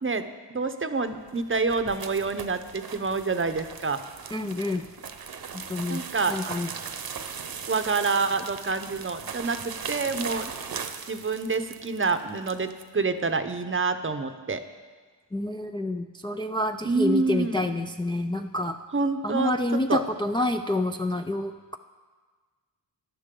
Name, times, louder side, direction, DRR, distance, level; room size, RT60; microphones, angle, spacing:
voice 1, 0.0-4.0 5.9-6.4 7.7-10.5 11.1-14.6 16.8-17.7 18.9-19.5 19.9-20.0, right 4 dB, 30° right, 9 dB, 0.8 m, -27 dB
sound 1, 1.1-12.9, right 6 dB, 55° right, 0.9 m, -38 dB
voice 2, 4.3-4.9 5.7-6.7 15.3-18.8 19.2-21.8, left 1 dB, 10° left, 4 dB, 0.4 m, -28 dB
16.5 x 11.0 x 3.8 m, 1.4 s
cardioid pair, 75°, 43 cm